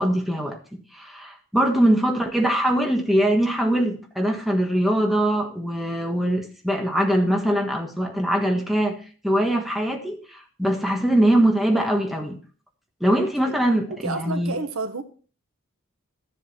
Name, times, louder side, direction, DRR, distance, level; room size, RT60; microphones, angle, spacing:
voice 1, 0.0-9.0 9.2-12.4 13.0-14.6, right 1 dB, ahead, 1.4 m, -22 dB
voice 2, 14.0-15.0, right 3 dB, 80° right, 1.1 m, -30 dB
12.5 x 7.5 x 4.3 m
head